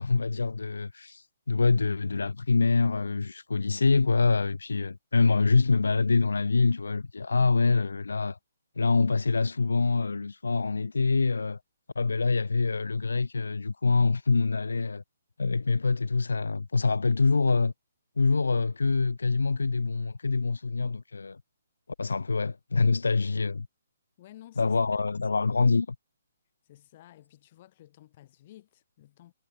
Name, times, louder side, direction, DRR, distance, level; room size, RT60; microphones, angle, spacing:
voice 1, 0.0-8.4 8.8-11.6 12.0-15.0 15.4-17.7 18.2-21.4 22.0-23.7 24.6-26.0, left 4 dB, 85° left, 0.6 m, -25 dB
voice 2, 24.2-24.7 26.6-29.3, left 14 dB, 40° left, 3.2 m, -53 dB
hypercardioid pair, 145°, 0 cm